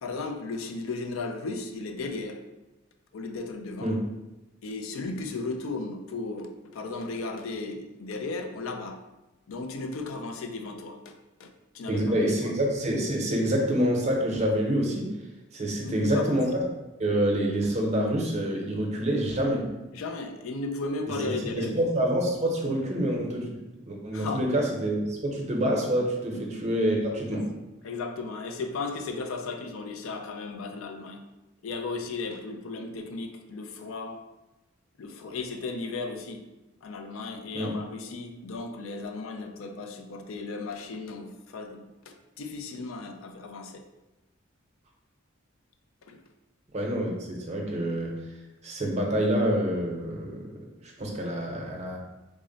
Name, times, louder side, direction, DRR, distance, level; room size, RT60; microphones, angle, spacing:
voice 1, 0.0-2.4 3.1-4.0 4.6-9.0 9.5-11.1 11.4-11.5 11.7-12.6 15.8-16.4 19.9-21.9 24.1-24.5 26.3-26.4 27.3-27.4 27.8-31.2 31.6-34.2 35.0-36.4 36.8-43.8 46.0-46.2, left 3 dB, 80° left, 5 dB, 0.4 m, -35 dB
voice 2, 11.9-15.1 15.5-16.6 17.0-19.9 21.2-23.6 23.9-27.5 37.5-37.7 46.7-48.2 48.6-52.0, right 1 dB, 35° right, 0 dB, 0.6 m, -27 dB
3.6 x 2.1 x 3.8 m, 1.0 s
head